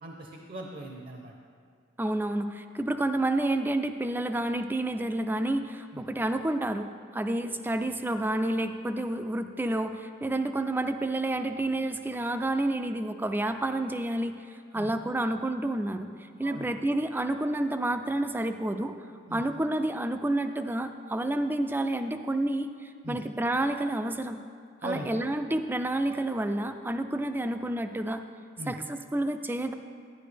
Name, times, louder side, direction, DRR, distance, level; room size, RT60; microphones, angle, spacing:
voice 1, 0.0-1.3 5.9-6.0 14.7-14.9 16.4-16.7 19.3-19.4 23.0-23.2 24.8-25.1 28.6-28.7, right 1 dB, 50° right, 1 dB, 0.8 m, -39 dB
voice 2, 2.0-6.9 7.1-16.1 16.4-19.0 19.3-24.4 24.8-28.2 28.7-29.7, right 1 dB, 10° right, 8 dB, 0.4 m, -29 dB
12.0 x 10.0 x 3.4 m, 2.2 s
head